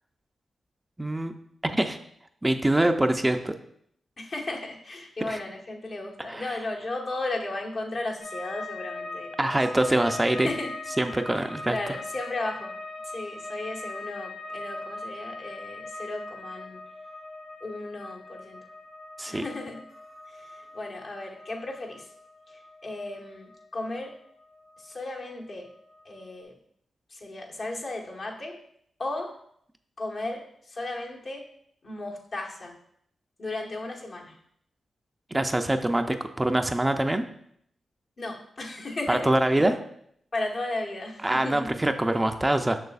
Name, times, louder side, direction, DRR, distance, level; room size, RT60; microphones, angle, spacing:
voice 1, 1.0-1.3 1.6-2.0 2.4-3.5 5.3-5.4 6.3-6.6 9.4-10.5 11.0-11.8 19.2-19.4 35.3-37.2 39.1-39.8 41.2-42.8, right 1 dB, 20° right, 6 dB, 0.5 m, -24 dB
voice 2, 4.2-9.5 10.4-10.8 11.3-12.7 13.0-16.8 17.6-18.6 19.3-19.8 20.3-22.1 22.5-24.1 24.8-25.7 26.0-26.6 27.1-28.6 29.0-29.3 30.0-31.4 31.8-32.8 33.4-34.3 38.2-39.6 40.3-41.7, left 2 dB, 55° left, -1 dB, 1.2 m, -35 dB
sound 1, 8.2-25.3 25.6-26.3, left 2 dB, 85° left, 1.5 m, -41 dB
6.5 x 6.2 x 2.4 m, 0.69 s
cardioid pair, 50°, 0 cm